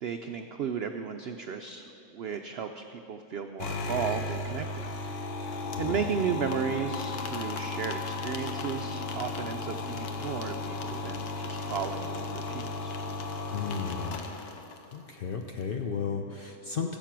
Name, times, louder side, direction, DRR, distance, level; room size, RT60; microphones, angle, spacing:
voice 1, 0.0-1.8 2.1-4.8 5.4-13.0, right 7 dB, 80° right, 6 dB, 0.5 m, -34 dB
sound 1, 3.6-15.0, left 3 dB, 85° left, 1.4 m, -35 dB
voice 2, 5.8-6.2 13.5-14.2 14.9-17.0, left 6 dB, 55° left, 3 dB, 0.6 m, -34 dB
15.0 x 7.3 x 6.0 m, 2.9 s
omnidirectional pair, 1.6 m